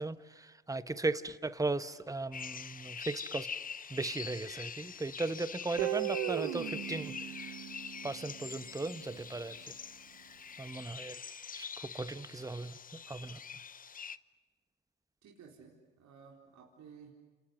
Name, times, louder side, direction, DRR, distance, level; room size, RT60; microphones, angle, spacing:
voice 1, 0.0-3.5 3.9-7.5 8.0-9.7 10.6-11.2 11.5-12.7 13.1-13.4, right 2 dB, 10° right, 13 dB, 1.2 m, -37 dB
sound 1, 2.3-14.2, left 6 dB, 25° left, 0.7 m, -45 dB
Guitar, 5.8-8.7, right 14 dB, 75° right, 1.4 m, -37 dB
voice 2, 15.2-17.1, right 6 dB, 55° right, -1 dB, 4.3 m, -55 dB
29.5 x 28.0 x 6.5 m, 1.3 s
hypercardioid pair, 65°, 34 cm